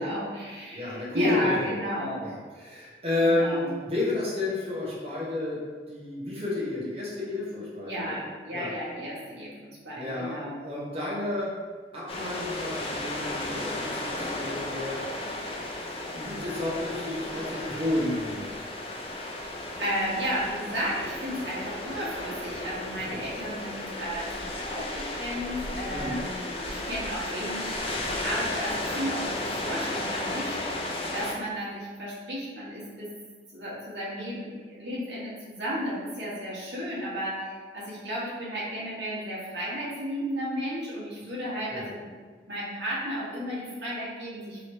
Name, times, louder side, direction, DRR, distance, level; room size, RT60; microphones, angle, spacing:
voice 1, 0.0-2.3 3.2-3.8 7.9-10.6 19.8-33.1 33.5-42.1 42.5-44.6, equal, 85° right, -7 dB, 1.3 m, -33 dB
voice 2, 0.7-1.8 2.2-8.2 8.5-8.7 10.0-11.5 11.9-15.2 16.1-18.5 23.1-23.2 25.9-26.2 41.7-41.8, left 2 dB, 35° right, -7 dB, 0.9 m, -31 dB
sound 1, 12.1-31.3, left 2 dB, 35° left, 0.5 m, -34 dB
3.2 x 3.1 x 4.1 m, 1.5 s
head